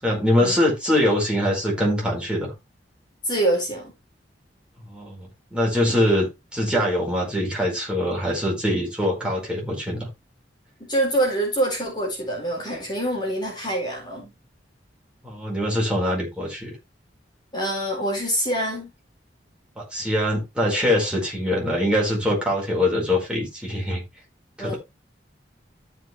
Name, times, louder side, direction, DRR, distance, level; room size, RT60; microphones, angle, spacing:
voice 1, 0.0-2.5 4.9-6.3 6.5-10.1 15.2-16.7 19.8-24.0 24.6-24.8, left 1 dB, 5° right, 4.9 m, -23 dB
voice 2, 3.2-3.9 5.9-6.0 10.9-14.3 17.5-18.9 24.6-24.8, right 1 dB, 25° left, 4.3 m, -25 dB
14.0 x 5.6 x 3.4 m
head